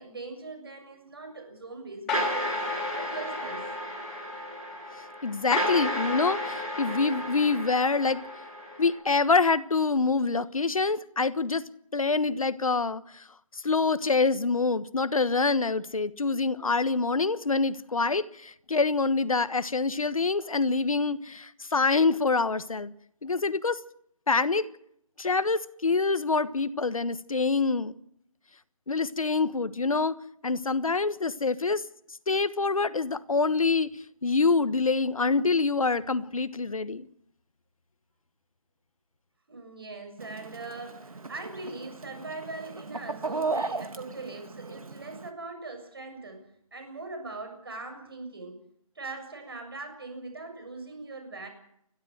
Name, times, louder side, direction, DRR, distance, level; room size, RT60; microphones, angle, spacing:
voice 1, 0.0-2.5 2.9-3.7 39.5-48.6 49.0-51.5, right 3 dB, 40° right, 7.1 m, -41 dB
sound 1, 2.1-8.9, left 1 dB, 5° left, 5.4 m, -32 dB
voice 2, 5.2-8.2 8.8-11.6 11.9-13.3 13.5-22.9 23.2-23.8 24.3-24.7 25.2-27.9 28.9-30.2 30.4-31.8 32.3-37.1, left 4 dB, 70° left, 1.3 m, -26 dB
Chicken rooster, 40.2-45.3, right 3 dB, 75° right, 2.0 m, -36 dB
29.5 x 12.5 x 7.8 m
hypercardioid pair, 180°, 18 cm